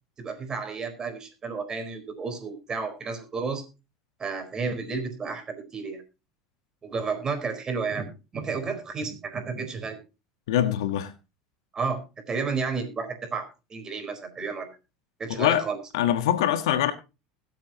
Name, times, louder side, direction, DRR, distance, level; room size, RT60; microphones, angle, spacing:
voice 1, 0.2-3.6 4.2-6.0 6.8-10.0 11.7-12.0 12.3-14.7 15.2-15.8, right 5 dB, 25° right, 4.4 m, -32 dB
voice 2, 10.5-11.1 15.3-15.6 15.9-16.9, left 11 dB, 80° left, 1.5 m, -23 dB
21.0 x 8.1 x 3.0 m
hypercardioid pair, 100°, 3 cm